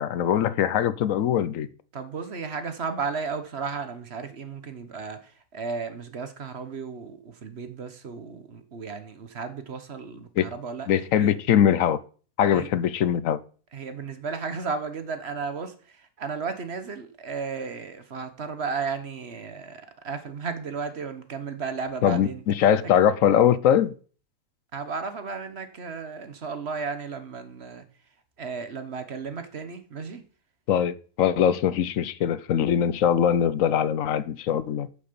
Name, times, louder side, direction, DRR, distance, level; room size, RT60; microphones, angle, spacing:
voice 1, 0.0-1.7 10.4-10.5 10.9-12.0 12.4-13.4 22.0-23.9 30.7-34.9, left 9 dB, 65° left, 1.0 m, -22 dB
voice 2, 1.9-10.9 11.2-11.3 12.5-12.7 13.7-22.4 24.7-27.8 28.4-30.2, right 5 dB, 45° right, 1.3 m, -34 dB
9.2 x 6.9 x 6.8 m
omnidirectional pair, 1.6 m